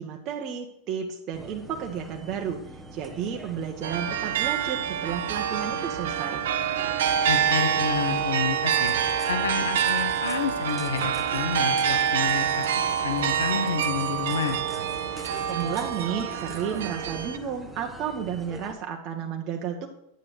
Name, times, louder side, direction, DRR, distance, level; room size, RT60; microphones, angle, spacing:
voice 1, 0.0-2.6 2.9-6.4 15.5-19.9, right 8 dB, 35° right, 1 dB, 1.2 m, -32 dB
sound 1, 1.3-18.7, right 1 dB, ahead, 1.3 m, -43 dB
sound 2, 3.8-17.4, right 8 dB, 60° right, 0.8 m, -26 dB
voice 2, 7.3-9.0 9.3-12.6 13.0-14.6, left 6 dB, 70° left, 7 dB, 1.2 m, -29 dB
10.5 x 9.0 x 4.7 m, 0.79 s
figure-of-eight pair, 90°, 0 cm